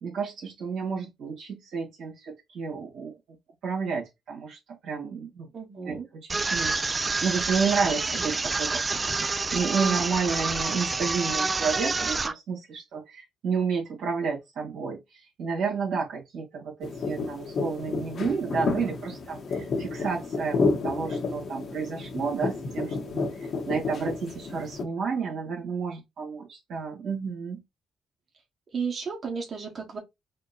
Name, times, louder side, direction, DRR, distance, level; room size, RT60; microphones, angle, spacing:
voice 1, 0.0-3.1 3.6-5.5 5.8-27.6, right 5 dB, 75° right, 1.7 m, -31 dB
voice 2, 5.5-6.1 28.7-30.0, right 5 dB, 45° right, 1.4 m, -33 dB
sound 1, 6.3-12.3, right 3 dB, 30° right, 0.4 m, -28 dB
sound 2, 16.8-24.8, left 3 dB, 55° left, 1.1 m, -30 dB
4.3 x 2.2 x 4.2 m
cardioid pair, 90°, 0 cm